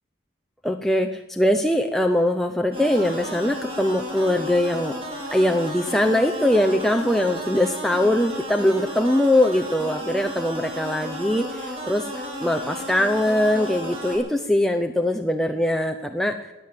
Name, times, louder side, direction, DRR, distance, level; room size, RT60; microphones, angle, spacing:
voice 1, 0.6-5.0 5.3-12.1 12.4-16.3, left 1 dB, ahead, 3 dB, 0.7 m, -22 dB
sound 1, 2.7-14.2, equal, 30° right, 4.7 m, -33 dB
17.5 x 9.8 x 7.6 m, 1.1 s
head